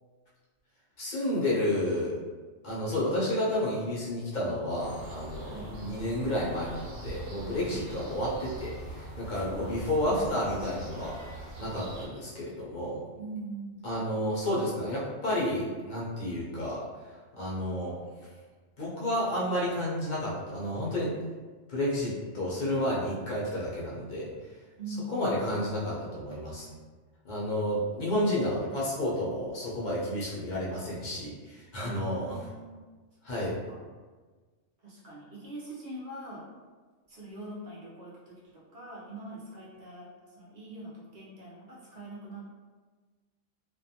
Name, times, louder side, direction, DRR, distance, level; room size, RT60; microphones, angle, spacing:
voice 1, 1.0-2.1 2.6-11.1 11.6-13.0 13.8-16.8 17.3-18.0 18.8-21.1 21.7-24.3 25.1-26.7 27.2-32.4 33.2-33.6, left 1 dB, 50° left, -6 dB, 0.6 m, -31 dB
sound 1, 4.8-12.1, right 1 dB, 85° right, 1.2 m, -43 dB
voice 2, 5.4-5.8 9.2-10.4 13.2-13.9 24.8-25.6 31.8-32.8 33.3-33.8 34.8-36.4 37.1-42.5, right 1 dB, 50° right, -6 dB, 0.7 m, -43 dB
2.5 x 2.2 x 2.7 m, 1.4 s
omnidirectional pair, 1.3 m